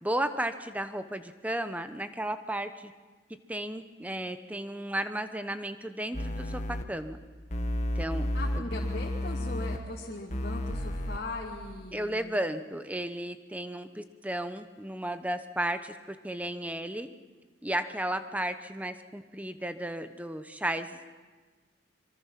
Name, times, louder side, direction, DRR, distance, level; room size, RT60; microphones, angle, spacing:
voice 1, 0.0-2.9 3.5-6.6 6.9-7.2 8.0-8.3 8.5-8.6 11.9-17.1 17.6-21.2, right 1 dB, 10° right, 9 dB, 0.9 m, -34 dB
sound 1, 6.1-6.8 7.5-9.8 10.3-11.2, left 1 dB, 40° left, 1.5 m, -31 dB
voice 2, 8.3-12.4, left 2 dB, 55° left, -5 dB, 2.8 m, -39 dB
25.5 x 24.0 x 5.9 m, 1.4 s
head